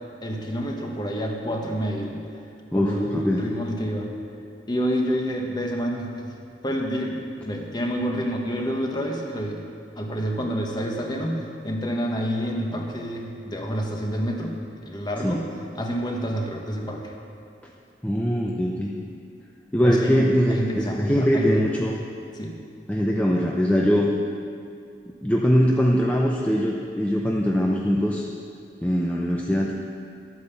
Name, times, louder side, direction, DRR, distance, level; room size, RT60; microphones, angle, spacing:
voice 1, 0.2-2.2 2.7-4.1 4.7-6.3 6.6-9.6 10.0-14.5 14.8-15.4 15.7-17.1 19.8-21.7 22.3-22.5, equal, 25° left, 1 dB, 1.4 m, -28 dB
voice 2, 2.7-3.5 15.2-15.4 18.0-18.9 19.7-22.0 22.9-24.1 25.2-28.3 28.8-29.7, equal, 10° left, -2 dB, 0.7 m, -22 dB
12.0 x 9.4 x 7.0 m, 2.4 s
head